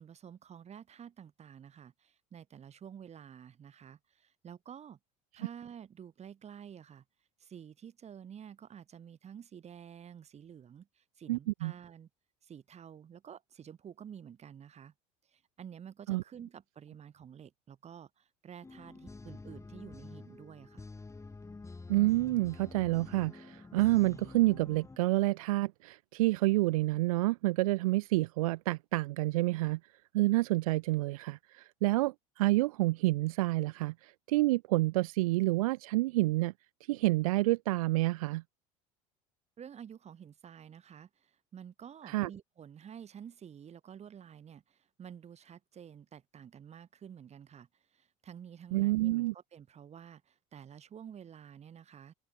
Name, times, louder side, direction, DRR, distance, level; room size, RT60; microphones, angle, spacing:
voice 1, 0.0-5.0 5.4-7.0 7.4-12.1 12.4-14.9 15.3-20.9 39.6-52.1, right 8 dB, 40° right, 5.4 m, -50 dB
voice 2, 11.3-11.7 16.1-16.2 21.9-29.8 30.1-36.5 36.9-38.4 42.1-42.3 48.7-49.3, right 19 dB, 85° right, 0.5 m, -28 dB
sound 1, 18.6-25.0, left 3 dB, 15° left, 5.6 m, -48 dB
open air
supercardioid pair, 90°, 18 cm